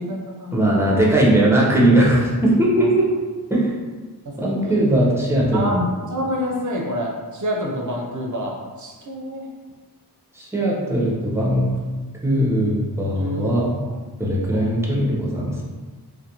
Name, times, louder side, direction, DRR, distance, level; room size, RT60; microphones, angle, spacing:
voice 1, 0.0-1.0 2.8-2.9 4.3-4.9 5.5-9.5 12.5-12.7 13.1-13.5 14.5-14.7, equal, 50° right, -1 dB, 0.6 m, -28 dB
voice 2, 0.5-3.1 3.5-3.7 4.4-5.6 10.3-11.7 12.2-13.8 14.2-15.6, right 1 dB, 5° right, -5 dB, 0.7 m, -19 dB
2.4 x 2.2 x 2.9 m, 1.3 s
wide cardioid pair, 40°, 39 cm